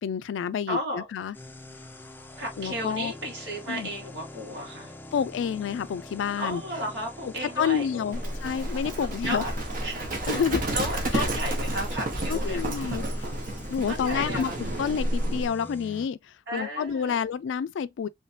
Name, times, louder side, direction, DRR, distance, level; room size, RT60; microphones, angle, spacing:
voice 1, 0.0-1.3 2.6-3.1 3.7-3.9 5.1-6.6 7.4-9.4 10.3-10.7 11.1-11.3 12.3-13.0 13.7-16.2 16.5-18.1, left 7 dB, 80° left, 0.3 m, -29 dB
voice 2, 0.7-1.1 2.4-4.9 6.4-8.3 8.6-9.5 9.8-10.1 10.7-12.6 12.9-13.3 13.9-14.6 16.5-17.2, equal, 75° right, 2.0 m, -34 dB
sound 1, 1.3-16.1, left 1 dB, 10° left, 0.4 m, -45 dB
Livestock farm animals working animals, 8.1-15.5, right 1 dB, 50° right, 1.0 m, -30 dB
3.2 x 3.2 x 2.7 m
head